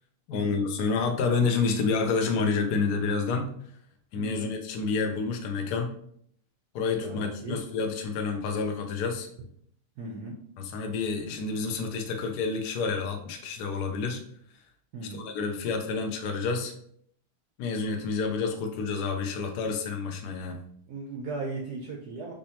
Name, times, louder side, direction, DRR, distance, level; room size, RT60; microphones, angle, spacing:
voice 1, 0.3-3.5 4.1-5.9 6.7-9.3 10.6-14.2 15.1-16.7 17.6-20.6, left 4 dB, 65° left, 3 dB, 1.0 m, -29 dB
voice 2, 4.2-4.5 7.0-7.6 10.0-10.3 14.9-15.3 20.9-22.3, right 3 dB, 75° right, -1 dB, 0.9 m, -37 dB
5.2 x 3.4 x 2.8 m, 0.65 s
omnidirectional pair, 2.4 m